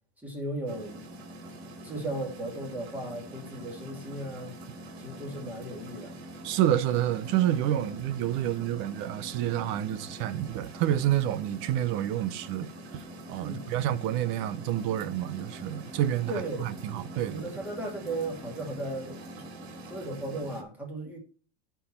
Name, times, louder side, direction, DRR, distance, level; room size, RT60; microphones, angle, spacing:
voice 1, 0.2-1.0 1.8-4.5 5.0-6.2 13.4-13.7 16.3-16.7 17.3-19.4 19.9-21.2, right 1 dB, 5° right, 2.6 m, -36 dB
sound 1, 0.7-20.6, right 1 dB, 75° right, 2.7 m, -44 dB
voice 2, 6.4-13.0 13.3-17.4, right 12 dB, 35° right, 0.8 m, -29 dB
11.0 x 4.7 x 4.4 m
supercardioid pair, 160°, 32 cm